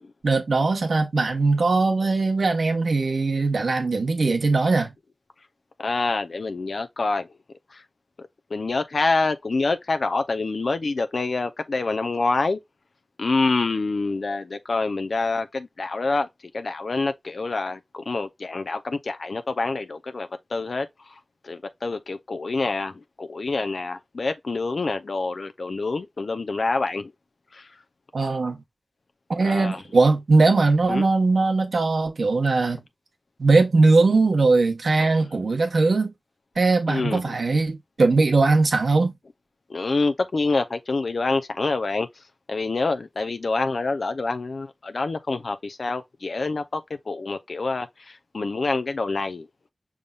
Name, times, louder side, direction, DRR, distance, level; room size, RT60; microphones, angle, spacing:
voice 1, 0.2-4.9 28.1-28.6 29.3-32.8 33.4-36.1 36.6-39.1, right 3 dB, 80° right, 1.1 m, -20 dB
voice 2, 5.8-7.3 7.7-7.8 8.2-12.6 13.2-16.3 16.5-27.1 27.5-27.7 29.4-29.8 30.9-31.1 36.9-37.3 39.7-49.5, left 3 dB, 75° left, 0.6 m, -27 dB
5.4 x 3.6 x 2.4 m
wide cardioid pair, 65°, 0 cm